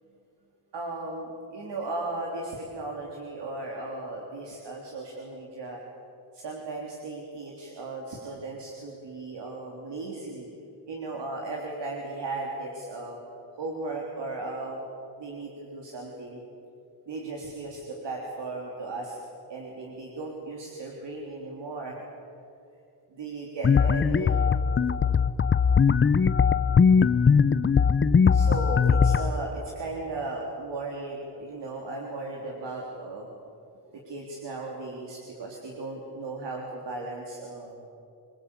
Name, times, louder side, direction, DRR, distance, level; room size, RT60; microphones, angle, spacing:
voice 1, 0.7-5.8 6.3-10.5 10.9-13.2 13.6-14.8 15.2-16.4 17.1-19.2 19.5-22.0 23.1-24.5 28.3-33.3 34.1-37.8, right 2 dB, 80° right, -1 dB, 3.6 m, -36 dB
sound 1, 23.6-29.3, left 6 dB, 30° left, 0.7 m, -20 dB
26.5 x 21.5 x 8.4 m, 2.7 s
wide cardioid pair, 130°, 41 cm